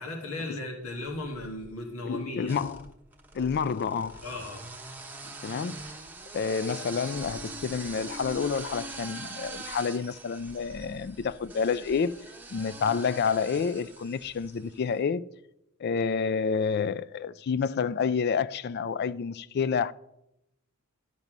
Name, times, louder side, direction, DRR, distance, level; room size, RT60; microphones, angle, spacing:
voice 1, 0.0-2.5 4.2-4.7, left 2 dB, 85° left, 1.4 m, -36 dB
sound 1, 1.1-1.7 2.4-14.7, right 2 dB, 10° right, 0.9 m, -43 dB
voice 2, 2.1-2.8 3.3-4.2 5.4-6.0 6.3-15.3 15.8-19.9, left 6 dB, 45° left, 0.3 m, -29 dB
11.5 x 5.4 x 6.0 m
head